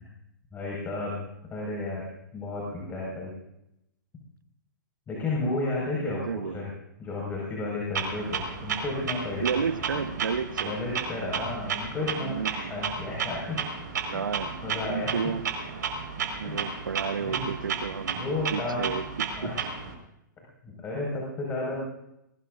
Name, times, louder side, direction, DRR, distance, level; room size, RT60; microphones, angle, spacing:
voice 1, 0.5-2.1 2.3-3.3 5.1-6.7 7.0-10.0 10.6-13.6 14.0-14.2 14.6-15.2 16.4-16.7 17.2-17.4 18.2-18.9 19.4-19.6 20.6-21.8, left 2 dB, 20° left, -3 dB, 5.3 m, -33 dB
voice 2, 5.9-6.7 9.4-10.8 12.2-12.7 14.1-14.5 14.8-15.4 16.4-19.5, right 6 dB, 85° right, 12 dB, 1.1 m, -32 dB
Clock, 7.9-19.9, right 6 dB, 70° right, 4.9 m, -33 dB
22.0 x 19.0 x 2.6 m, 0.84 s
hypercardioid pair, 135°, 11 cm